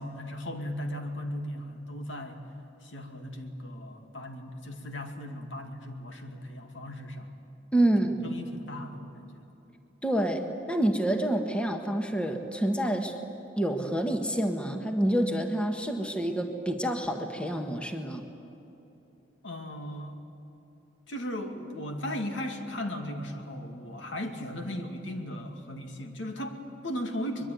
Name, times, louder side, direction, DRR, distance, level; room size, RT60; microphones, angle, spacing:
voice 1, 0.0-2.5 2.8-7.3 8.0-9.4 19.4-20.2 21.1-27.5, left 1 dB, 75° left, 4 dB, 2.5 m, -37 dB
voice 2, 7.7-8.1 10.0-13.2 13.6-18.2, right 1 dB, 5° left, 5 dB, 1.4 m, -27 dB
24.0 x 22.0 x 9.4 m, 2.9 s
head